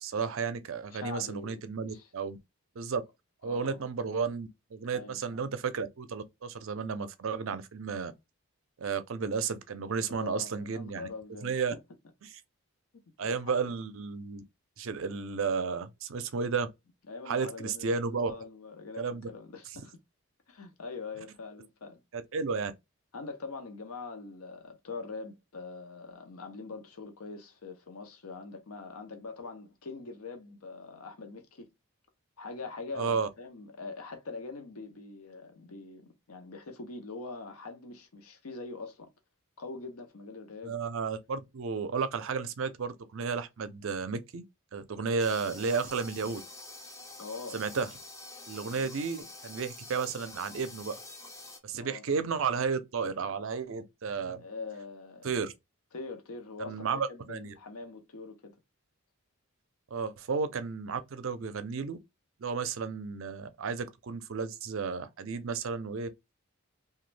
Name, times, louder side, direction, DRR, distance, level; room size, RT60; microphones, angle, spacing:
voice 1, 0.0-2.4 2.8-3.0 3.4-8.1 8.8-11.1 11.4-11.7 12.2-12.3 13.2-14.4 14.8-16.7 17.3-18.3 19.0-19.3 22.1-22.7 33.0-33.3 40.6-44.4 44.7-46.4 47.5-47.9 48.5-50.9 51.6-54.4 55.2-55.5 56.6-57.5 59.9-62.0 62.4-66.1, right 5 dB, 60° right, 0.5 m, -33 dB
voice 2, 0.9-1.6 1.9-2.1 3.4-3.8 4.9-5.4 10.1-11.8 12.9-13.6 17.1-19.9 20.5-22.0 23.1-31.7 32.4-39.1 39.6-40.8 47.2-47.6 48.7-48.9 51.8-52.0 54.4-55.3 55.9-58.6, left 4 dB, 75° left, 0.7 m, -43 dB
sound 1, 45.2-51.6, left 2 dB, 15° left, 0.4 m, -47 dB
3.0 x 2.3 x 3.2 m
head